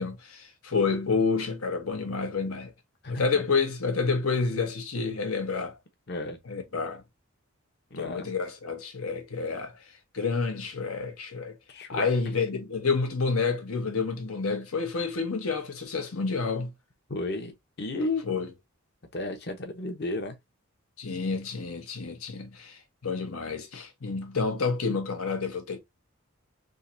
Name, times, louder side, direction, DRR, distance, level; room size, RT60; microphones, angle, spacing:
voice 1, 0.0-2.7 3.1-5.8 6.5-7.0 8.0-9.7 10.1-11.6 11.9-16.7 18.3-18.5 21.0-25.8, left 4 dB, 85° left, 1.2 m, -29 dB
voice 2, 6.1-6.4 7.9-8.2 11.7-12.1 17.1-17.5 17.8-18.2 19.1-20.4, left 2 dB, 50° left, 0.9 m, -32 dB
3.8 x 2.9 x 2.6 m
head